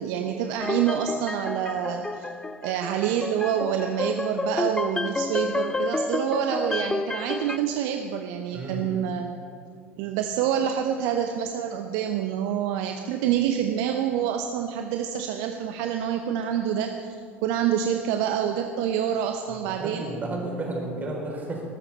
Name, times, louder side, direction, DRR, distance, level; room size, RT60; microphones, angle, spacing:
voice 1, 0.0-2.3 2.6-9.4 10.0-17.1 17.4-20.0, right 9 dB, 55° right, 5 dB, 0.8 m, -27 dB
sound 1, 0.6-7.6, left 2 dB, 10° left, 0.5 m, -30 dB
voice 2, 8.5-8.9 19.5-21.6, right 2 dB, 25° right, -1 dB, 4.6 m, -32 dB
20.5 x 13.0 x 4.3 m, 2.4 s
figure-of-eight pair, 70°, 7 cm